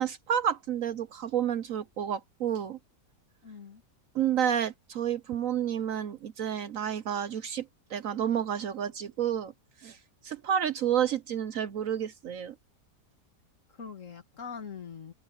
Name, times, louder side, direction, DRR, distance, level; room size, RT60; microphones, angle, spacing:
voice 1, 0.0-2.8 4.1-9.5 9.8-10.0 10.2-12.6, right 9 dB, 60° right, 1.0 m, -30 dB
voice 2, 3.4-3.8 13.7-15.1, left 6 dB, 50° left, 2.3 m, -42 dB
omnidirectional pair, 1.7 m